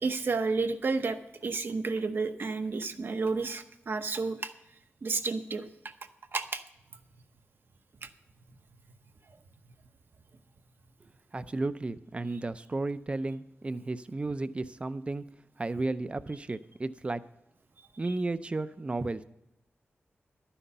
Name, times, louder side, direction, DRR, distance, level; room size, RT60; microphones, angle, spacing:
voice 1, 0.0-4.5 5.0-5.7 6.3-6.6 8.0-8.1, right 4 dB, 55° right, 8 dB, 0.8 m, -31 dB
voice 2, 11.3-15.2 15.6-17.2 18.0-19.2, right 2 dB, 25° right, 13 dB, 0.5 m, -33 dB
11.5 x 10.0 x 5.5 m, 0.87 s
wide cardioid pair, 140°, 4 cm